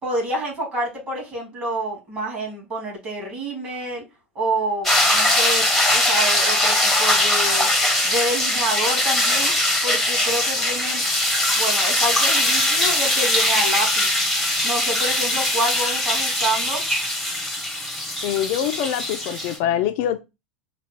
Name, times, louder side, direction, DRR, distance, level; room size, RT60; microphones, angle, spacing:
voice 1, 0.0-4.0 4.3-7.7 8.0-9.5 9.8-11.0 11.5-14.1 14.6-16.8, right 1 dB, 25° right, 2.4 m, -27 dB
sound 1, 4.8-19.6, left 1 dB, ahead, 0.9 m, -21 dB
voice 2, 18.2-20.2, left 10 dB, 45° left, 0.4 m, -24 dB
4.0 x 2.3 x 3.5 m
figure-of-eight pair, 80°, 6 cm